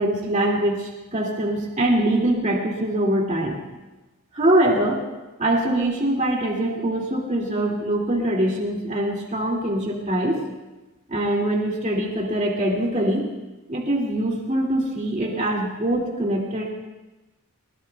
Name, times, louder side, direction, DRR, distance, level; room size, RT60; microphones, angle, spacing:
voice 1, 0.0-3.6 4.3-5.0 5.4-10.4 11.1-13.2 13.7-16.7, right 1 dB, 35° right, -3 dB, 2.4 m, -23 dB
21.0 x 20.5 x 2.3 m, 1.1 s
head